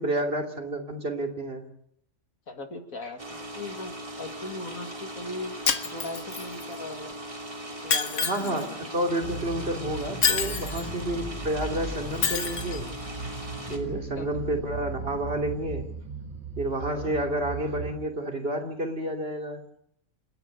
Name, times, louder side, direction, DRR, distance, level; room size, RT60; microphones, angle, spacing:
voice 1, 0.0-1.6 8.2-12.9 13.7-15.8 16.6-19.6, right 1 dB, 45° right, 2 dB, 3.2 m, -30 dB
voice 2, 2.5-7.2 7.8-8.7 13.7-14.3 16.8-17.1, left 2 dB, 85° left, 5 dB, 2.7 m, -39 dB
sound 1, 3.2-13.8, right 1 dB, 25° right, 3.3 m, -39 dB
Shatter, 5.7-6.6 7.9-8.6 10.2-10.9 12.2-12.8, left 6 dB, 65° left, 1.7 m, -27 dB
sound 2, 9.2-18.0, right 3 dB, 80° right, 3.5 m, -37 dB
28.0 x 10.5 x 9.5 m, 0.72 s
omnidirectional pair, 1.4 m